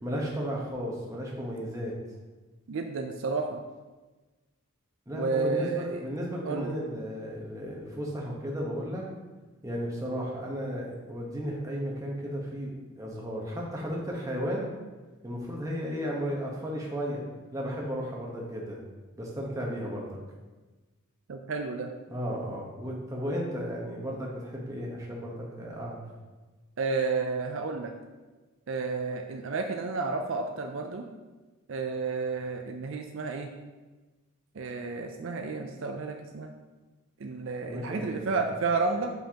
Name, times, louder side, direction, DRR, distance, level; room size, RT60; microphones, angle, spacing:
voice 1, 0.0-1.9 5.1-9.1 9.6-14.7 15.2-17.2 17.5-18.8 19.2-20.2 22.1-26.0 37.7-38.4, equal, 15° right, -3 dB, 1.0 m, -34 dB
voice 2, 2.7-3.6 5.1-6.0 6.4-6.7 21.3-21.9 26.8-27.9 28.7-31.1 31.7-33.5 34.5-36.5 37.2-39.1, right 4 dB, 60° right, 4 dB, 0.4 m, -31 dB
7.4 x 5.5 x 2.9 m, 1.2 s
head